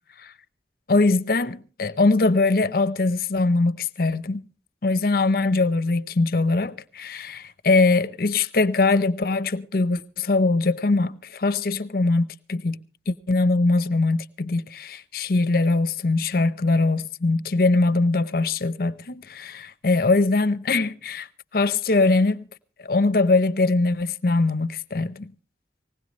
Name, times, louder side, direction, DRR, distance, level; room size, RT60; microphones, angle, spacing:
voice 1, 0.9-4.4 4.8-12.8 13.1-21.3 21.5-22.4 22.8-25.3, left 3 dB, 55° left, 0.7 m, -22 dB
19.5 x 17.5 x 3.1 m
head